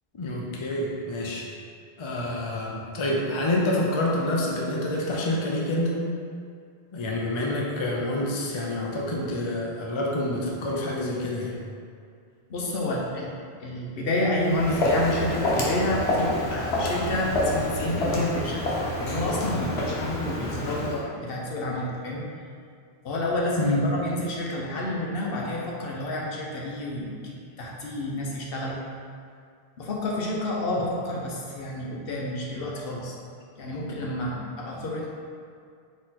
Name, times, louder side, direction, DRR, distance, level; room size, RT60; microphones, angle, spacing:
voice 1, 0.1-1.5 2.0-6.0 6.9-11.5 23.6-23.9, left 1 dB, 35° left, -2 dB, 0.5 m, -27 dB
voice 2, 12.5-13.3 13.6-18.6 19.0-22.3 23.0-28.8 29.8-33.1 33.6-35.1, left 1 dB, 65° left, -3 dB, 0.9 m, -29 dB
Walk footsteps, 14.4-21.0, left 1 dB, 90° left, 1.1 m, -27 dB
4.2 x 3.1 x 4.0 m, 2.3 s
omnidirectional pair, 1.1 m